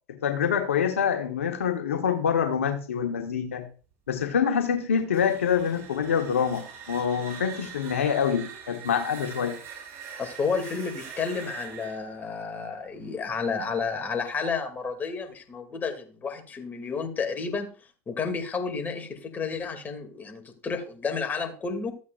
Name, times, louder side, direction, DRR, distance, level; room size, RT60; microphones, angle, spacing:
voice 1, 0.2-3.6 4.1-9.6, left 7 dB, 90° left, 5 dB, 1.2 m, -26 dB
sound 1, 5.0-13.8, right 7 dB, 45° right, 5.6 m, -43 dB
voice 2, 10.2-17.7 18.1-21.9, left 5 dB, 25° left, 4 dB, 2.5 m, -31 dB
14.0 x 8.3 x 2.5 m, 0.37 s
hypercardioid pair, 90°, 7 cm